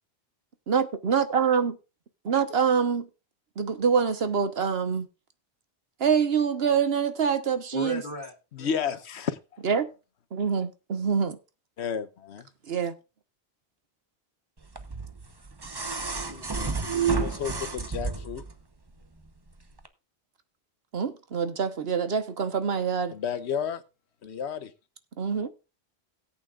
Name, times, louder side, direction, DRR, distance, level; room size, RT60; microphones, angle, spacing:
voice 1, 0.7-1.8 2.2-3.1 3.6-5.1 6.0-8.0 9.6-9.8 10.3-11.4 12.7-12.9 20.9-23.1 25.2-25.5, right 6 dB, 65° right, 1.3 m, -25 dB
voice 2, 7.7-9.0 15.9-17.7, left 2 dB, 45° left, 2.1 m, -41 dB
voice 3, 8.5-9.4 11.8-12.5 16.9-18.4 23.1-23.8 24.2-24.7, left 7 dB, 80° left, 1.1 m, -32 dB
sound 1, 14.8-18.5 19.8-19.9, right 5 dB, 25° right, 0.9 m, -30 dB
17.5 x 8.7 x 2.4 m
omnidirectional pair, 1.1 m